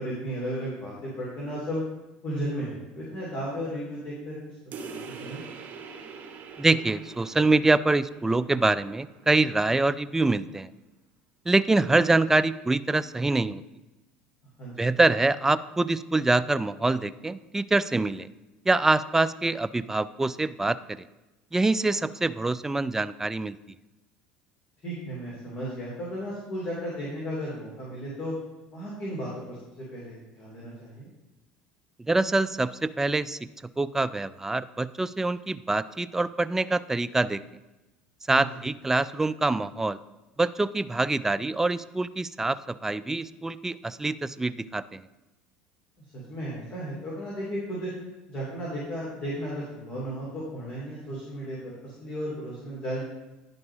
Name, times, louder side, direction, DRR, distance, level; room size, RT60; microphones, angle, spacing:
voice 1, 0.0-1.8 2.2-5.4 14.6-14.9 24.8-28.3 28.7-31.1 38.3-38.5 46.3-47.9 48.3-51.6 51.8-53.0, equal, 40° left, -6 dB, 2.6 m, -34 dB
sound 1, 4.7-9.8, right 5 dB, 45° right, 1.0 m, -44 dB
voice 2, 6.6-10.7 11.5-13.6 14.8-18.3 18.7-21.1 21.5-23.6 32.0-33.5 33.8-37.4 38.3-40.0 40.4-45.1, right 2 dB, 10° right, 14 dB, 0.3 m, -25 dB
10.5 x 3.9 x 3.6 m, 1.0 s
hypercardioid pair, 80°, 4 cm